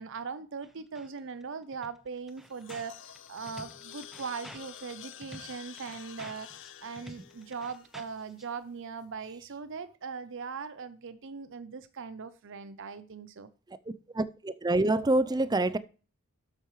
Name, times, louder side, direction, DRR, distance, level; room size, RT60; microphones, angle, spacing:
voice 1, 0.0-6.5 6.8-13.5, right 5 dB, 60° right, 0.6 m, -40 dB
sound 1, 0.6-1.1 1.4-1.5 1.7-8.4, equal, ahead, 0.9 m, -50 dB
sound 2, 2.3-8.6, left 10 dB, 55° left, 0.6 m, -49 dB
voice 2, 14.1-15.8, right 2 dB, 20° right, 0.5 m, -26 dB
12.5 x 8.2 x 3.2 m
head